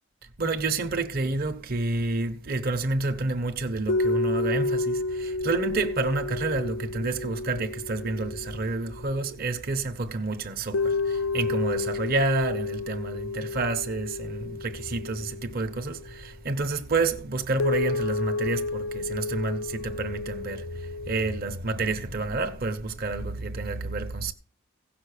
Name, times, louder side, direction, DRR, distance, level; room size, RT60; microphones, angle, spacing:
voice 1, 0.4-24.3, right 3 dB, 50° right, 1.0 m, -29 dB
sound 1, 3.9-9.3 10.7-16.2 17.6-21.4, left 3 dB, 75° left, 0.5 m, -31 dB
16.5 x 6.0 x 6.7 m
head